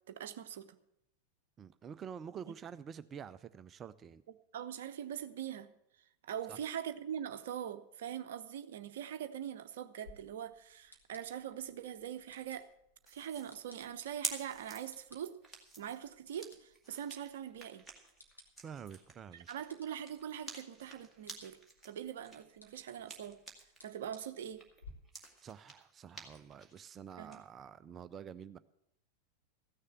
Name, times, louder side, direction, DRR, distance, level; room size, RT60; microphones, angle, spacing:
voice 1, 0.1-0.8 4.5-5.8 6.2-12.7 13.1-17.9 19.5-21.6 21.8-23.4 23.8-24.7 27.2-27.4, right 9 dB, 55° right, 9 dB, 0.8 m, -42 dB
voice 2, 1.6-4.2 6.5-6.6 18.6-19.5 25.4-28.6, right 7 dB, 25° right, 15 dB, 0.5 m, -48 dB
sound 1, 10.0-24.9, left 3 dB, 85° left, 1.8 m, -62 dB
sound 2, 13.1-23.9 24.2-27.4, right 3 dB, 5° right, 2.0 m, -49 dB
15.0 x 6.6 x 7.8 m, 0.78 s
figure-of-eight pair, 90°, 0 cm